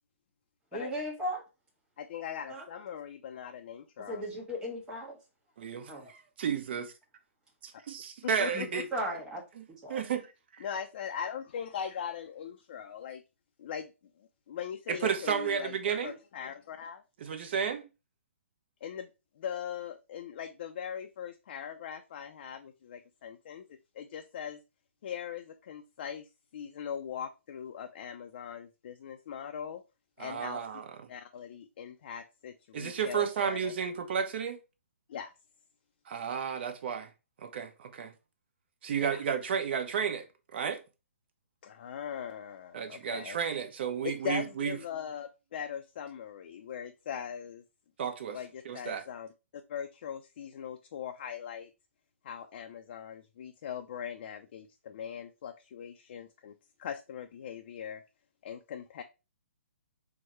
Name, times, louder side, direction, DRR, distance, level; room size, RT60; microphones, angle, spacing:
voice 1, 0.7-1.4 2.5-2.6 4.1-5.2 5.9-6.1 8.5-10.0, equal, 10° right, 1.3 m, -37 dB
voice 2, 2.0-4.2 8.2-8.8 10.6-13.2 13.6-13.9 14.2-15.7 16.0-17.0 18.8-19.1 19.4-23.6 23.9-24.6 25.0-26.3 26.5-29.8 30.2-30.6 31.1-33.7 35.1-35.3 39.0-39.2 41.6-43.4 44.0-47.6 48.3-49.3 49.7-51.7 52.2-56.5 56.8-58.0 58.4-59.0, left 8 dB, 50° left, 0.4 m, -40 dB
voice 3, 5.6-6.9 7.6-8.9 9.6-9.7 9.9-10.6 14.9-16.2 17.2-17.9 30.2-31.1 32.7-34.6 36.1-37.1 37.4-38.1 38.8-40.3 40.5-40.8 42.7-44.7 48.0-48.4 48.6-49.0, right 7 dB, 50° right, 0.9 m, -32 dB
4.6 x 2.2 x 4.3 m
figure-of-eight pair, 135°, 7 cm